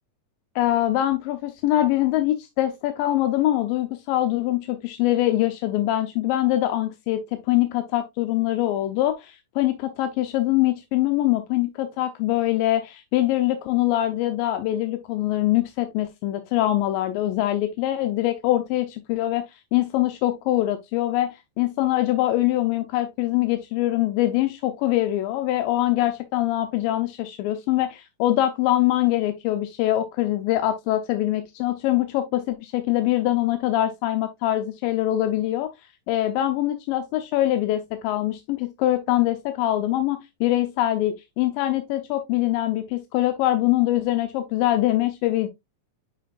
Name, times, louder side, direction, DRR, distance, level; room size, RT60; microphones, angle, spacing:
voice 1, 0.6-35.7 36.1-45.5, left 14 dB, 85° left, 2.3 m, -23 dB
9.2 x 4.6 x 2.4 m
omnidirectional pair, 4.0 m